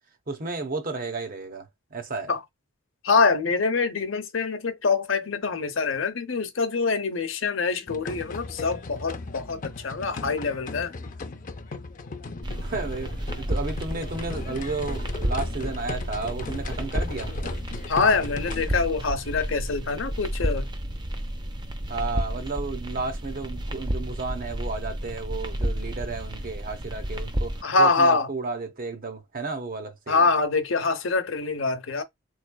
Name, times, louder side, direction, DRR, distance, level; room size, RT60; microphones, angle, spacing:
voice 1, 0.3-1.7 1.9-2.3 12.6-17.6 21.9-30.3, right 3 dB, 45° right, 0.9 m, -33 dB
voice 2, 3.0-10.9 17.9-20.7 27.6-28.3 30.1-32.0, left 4 dB, 65° left, 0.8 m, -24 dB
sound 1, 7.9-18.7, left 3 dB, 40° left, 0.5 m, -37 dB
sound 2, 12.4-27.6, equal, 20° right, 0.5 m, -31 dB
3.6 x 3.2 x 2.2 m
head